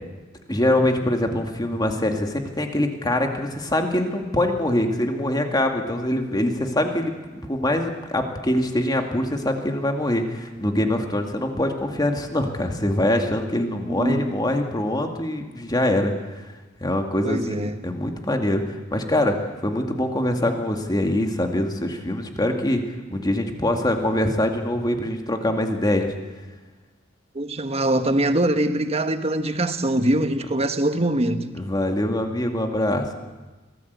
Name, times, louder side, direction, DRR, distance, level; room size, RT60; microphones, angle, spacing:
voice 1, 0.5-16.1 16.8-18.6 18.9-22.8 23.1-26.1 31.5-33.1, left 1 dB, 20° left, 2.2 m, -24 dB
voice 2, 13.9-14.4 17.2-17.8 27.3-31.5, right 1 dB, 30° right, 1.3 m, -23 dB
24.0 x 17.5 x 8.2 m
head